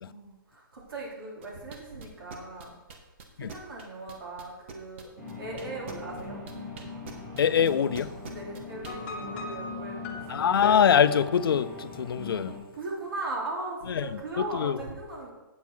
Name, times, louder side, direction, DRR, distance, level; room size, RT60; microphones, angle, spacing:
voice 1, 0.0-2.7 3.4-5.1 5.4-6.4 8.3-10.6 12.7-15.3, right 2 dB, 75° right, 3.1 m, -38 dB
sound 1, 1.4-9.0, right 5 dB, 35° right, 1.0 m, -44 dB
sound 2, 5.2-12.6, left 3 dB, 15° right, 2.8 m, -41 dB
voice 2, 7.4-8.1 10.3-12.5 13.9-14.8, left 8 dB, 80° left, 0.5 m, -24 dB
sound 3, 8.8-12.2, left 5 dB, 30° left, 1.1 m, -38 dB
8.3 x 7.3 x 4.5 m
hypercardioid pair, 170°, 12 cm